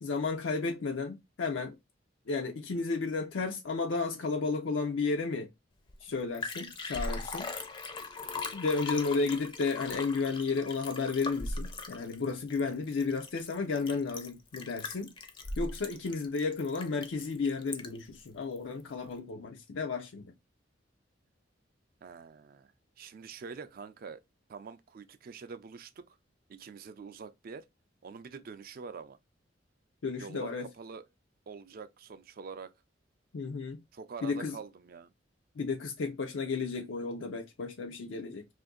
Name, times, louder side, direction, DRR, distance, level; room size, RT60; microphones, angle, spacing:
voice 1, 0.0-1.8 2.3-5.5 6.0-7.5 8.5-15.1 15.6-20.3 30.0-30.7 33.3-33.8 34.2-34.6 35.6-38.5, left 4 dB, 85° left, 0.5 m, -33 dB
Liquid, 5.9-6.0 6.2-18.1 18.6-18.7, left 3 dB, 25° left, 0.5 m, -39 dB
voice 2, 22.0-22.7 23.0-24.2 24.5-26.0 26.5-27.7 28.0-29.2 30.2-31.0 31.5-32.7 33.9-35.1, right 5 dB, 50° right, 0.4 m, -45 dB
2.6 x 2.5 x 3.6 m
head